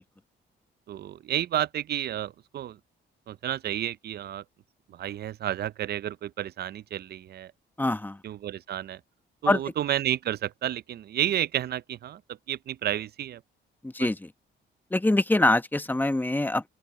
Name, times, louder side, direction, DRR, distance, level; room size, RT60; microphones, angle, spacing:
voice 1, 0.9-2.8 3.3-4.4 4.9-7.5 8.2-9.0 9.4-13.4 14.0-14.1, right 11 dB, 55° right, 0.5 m, -31 dB
voice 2, 7.8-8.2 9.5-9.6 13.8-14.3 14.9-16.7, left 2 dB, 10° left, 1.0 m, -24 dB
open air
cardioid pair, 90°, 20 cm